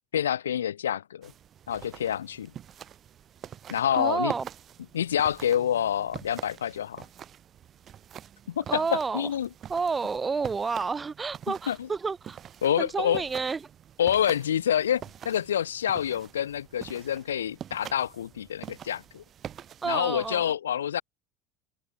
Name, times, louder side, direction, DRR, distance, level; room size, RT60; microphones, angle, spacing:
voice 1, 0.1-1.3 1.7-2.5 3.7-4.3 4.9-7.0 8.5-9.5 11.7-11.9 12.6-13.2 14.0-19.2 19.9-21.0, left 9 dB, 90° left, 1.0 m, -27 dB
sound 1, 1.2-20.4, right 9 dB, 45° right, 5.6 m, -45 dB
voice 2, 3.9-4.5 8.7-9.3 9.7-12.4 12.8-13.6 19.8-20.5, right 4 dB, 25° right, 7.4 m, -30 dB
hypercardioid pair, 75°, 0 cm